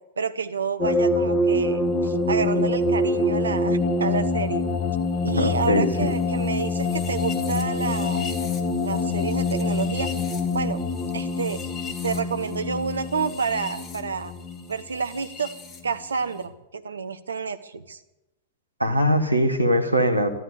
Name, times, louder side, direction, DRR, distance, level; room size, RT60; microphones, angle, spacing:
voice 1, 0.2-4.6 5.2-8.3 8.8-10.1 10.5-10.8 11.1-11.6 12.0-14.3 14.7-15.5 15.8-18.0, right 5 dB, 75° right, 11 dB, 1.0 m, -29 dB
sound 1, 0.8-15.8, left 2 dB, 25° left, 1.9 m, -25 dB
voice 2, 5.4-6.1 18.8-20.3, equal, 90° right, 6 dB, 1.7 m, -21 dB
14.0 x 12.5 x 8.1 m, 0.96 s
figure-of-eight pair, 95°, 0 cm